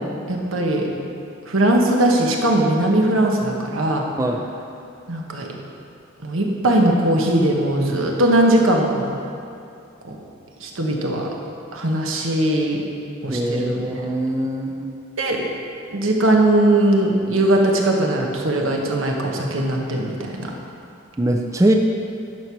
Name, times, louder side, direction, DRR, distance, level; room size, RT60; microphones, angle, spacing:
voice 1, 0.3-0.8 1.4-4.1 5.1-5.5 6.2-9.1 10.0-10.2 10.6-11.3 11.7-12.8 13.2-14.1 15.2-15.4 15.9-20.5, right 1 dB, 85° right, 0 dB, 1.2 m, -19 dB
voice 2, 13.3-14.9 21.2-21.7, right 1 dB, 15° right, 2 dB, 0.4 m, -22 dB
10.5 x 4.6 x 6.1 m, 2.6 s
head